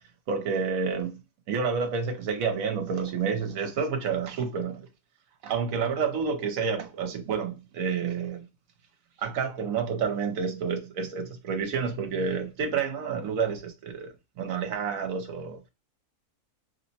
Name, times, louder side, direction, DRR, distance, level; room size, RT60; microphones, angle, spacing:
voice 1, 0.3-1.2 1.5-4.9 5.4-8.5 9.2-15.6, right 6 dB, 65° right, 1.1 m, -29 dB
3.0 x 2.1 x 4.0 m
omnidirectional pair, 1.6 m